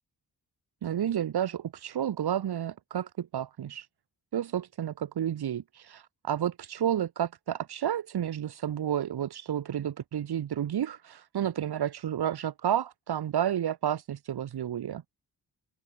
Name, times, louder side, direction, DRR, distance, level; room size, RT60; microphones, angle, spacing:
voice 1, 0.8-3.9 4.3-15.0, right 10 dB, 70° right, 1.0 m, -31 dB
open air
cardioid pair, 60°, 40 cm